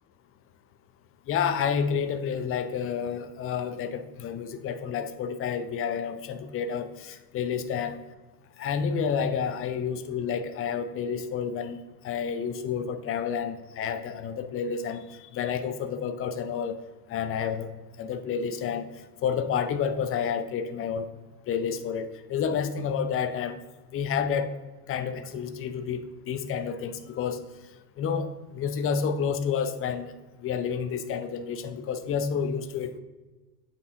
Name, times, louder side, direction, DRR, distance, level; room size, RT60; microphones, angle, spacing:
voice 1, 1.3-8.0 8.6-11.8 12.0-16.8 17.1-17.7 18.0-18.8 19.2-21.1 21.5-23.6 23.9-24.5 24.9-27.4 28.0-30.1 30.4-33.0, left 7 dB, 25° left, 10 dB, 0.6 m, -30 dB
8.2 x 4.5 x 3.8 m, 1.2 s
hypercardioid pair, 90°, 49 cm